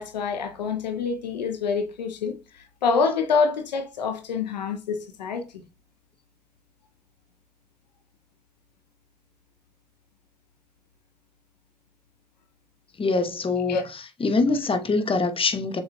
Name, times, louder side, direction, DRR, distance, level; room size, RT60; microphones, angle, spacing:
voice 1, 0.0-5.6 13.7-13.8, left 5 dB, 90° left, 0.5 m, -26 dB
voice 2, 13.0-15.8, left 3 dB, 25° left, 0.8 m, -24 dB
6.5 x 2.3 x 2.8 m
figure-of-eight pair, 45°, 21 cm